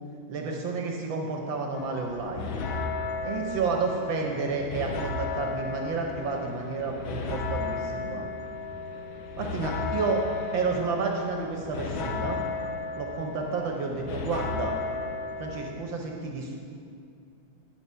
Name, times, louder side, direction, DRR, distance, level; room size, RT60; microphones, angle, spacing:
voice 1, 0.3-2.6 3.2-8.3 9.4-10.2 10.5-12.4 12.9-14.8 15.4-16.6, right 4 dB, 70° right, 1 dB, 1.5 m, -31 dB
sound 1, 1.7-15.7, left 4 dB, 75° left, 1.5 m, -34 dB
9.7 x 6.7 x 5.5 m, 2.4 s
omnidirectional pair, 2.3 m